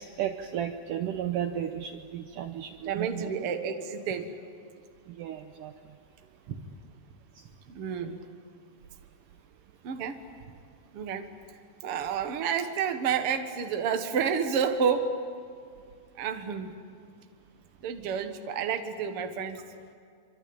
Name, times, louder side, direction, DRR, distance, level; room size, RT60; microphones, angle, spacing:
voice 1, 0.0-3.3 5.1-5.7 7.4-7.5, right 10 dB, 85° right, 7 dB, 1.9 m, -34 dB
voice 2, 2.8-4.3 6.5-6.6 7.7-8.2 9.8-10.2 10.9-11.3 11.8-15.1 16.1-16.8 17.8-19.6, right 7 dB, 60° right, 7 dB, 1.5 m, -30 dB
25.5 x 25.5 x 8.9 m, 2.3 s
omnidirectional pair, 4.9 m